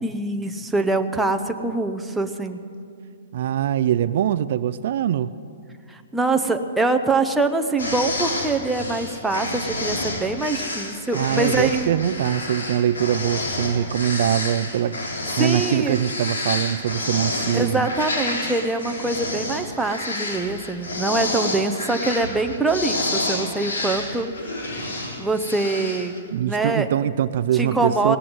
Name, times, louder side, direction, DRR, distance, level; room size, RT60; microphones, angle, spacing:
voice 1, 0.0-2.6 5.9-11.9 15.4-16.0 17.5-26.1 26.4-26.9 27.5-28.2, right 2 dB, 5° right, 5 dB, 0.7 m, -24 dB
voice 2, 3.3-5.3 11.1-15.0 15.4-17.9 26.3-28.2, right 10 dB, 55° right, 14 dB, 0.4 m, -23 dB
sound 1, 7.8-26.2, left 2 dB, 85° left, 3.9 m, -29 dB
18.0 x 7.6 x 9.6 m, 2.3 s
hypercardioid pair, 150°, 0 cm